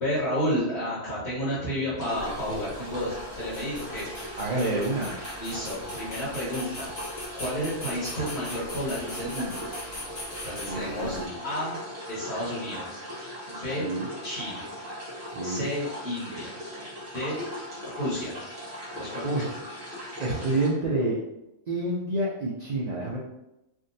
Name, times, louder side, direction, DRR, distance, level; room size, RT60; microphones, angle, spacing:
voice 1, 0.0-4.1 5.4-6.9 7.4-9.6 10.4-11.8 12.1-13.0 13.5-13.9 14.2-14.6 15.4-16.5 17.1-17.4 17.8-18.3 18.9-19.5, equal, 65° left, -10 dB, 1.6 m, -31 dB
sound 1, 2.0-20.7, equal, 35° right, 1.0 m, -39 dB
sound 2, 2.1-11.3, left 1 dB, 45° left, 1.0 m, -41 dB
voice 2, 4.4-5.1 10.7-11.3 13.8-14.1 15.3-15.7 18.8-19.4 20.2-21.2 21.7-23.2, right 2 dB, 70° right, -6 dB, 0.4 m, -28 dB
3.5 x 2.6 x 2.6 m, 0.91 s
omnidirectional pair, 1.4 m